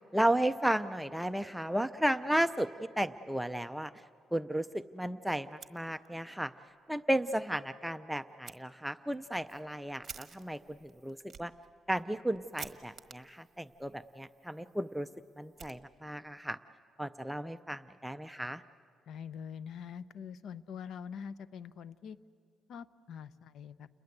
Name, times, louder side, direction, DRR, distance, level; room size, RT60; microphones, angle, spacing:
voice 1, 0.1-2.7 3.0-3.9 4.3-6.5 6.9-11.5 11.9-15.1 15.4-16.6 17.0-18.6, right 1 dB, ahead, 10 dB, 0.5 m, -34 dB
Fire, 5.4-6.4 6.7-6.8 7.2-7.3 8.4-8.6 9.2-16.3, right 6 dB, 40° right, 1.4 m, -53 dB
voice 2, 19.1-22.2 22.7-23.9, left 7 dB, 70° left, 16 dB, 0.7 m, -44 dB
29.5 x 21.0 x 8.0 m, 2.3 s
cardioid pair, 90°, 0 cm